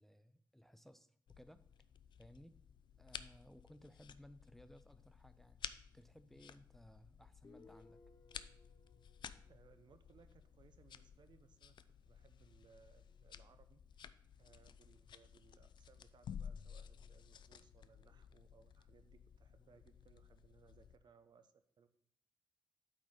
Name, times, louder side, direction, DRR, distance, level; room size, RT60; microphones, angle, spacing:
voice 1, 0.0-1.7 2.2-2.6 3.0-5.7 5.9-8.0, equal, 5° left, 11 dB, 0.4 m, -61 dB
sound 1, 1.3-21.0, left 8 dB, 75° left, 0.4 m, -55 dB
Guitar, 7.4-11.0, left 3 dB, 50° left, 0.7 m, -65 dB
voice 2, 9.5-11.8 12.0-14.1 14.4-21.9, right 6 dB, 70° right, 10 dB, 0.7 m, -67 dB
8.7 x 4.0 x 4.8 m, 0.65 s
wide cardioid pair, 100°, 8 cm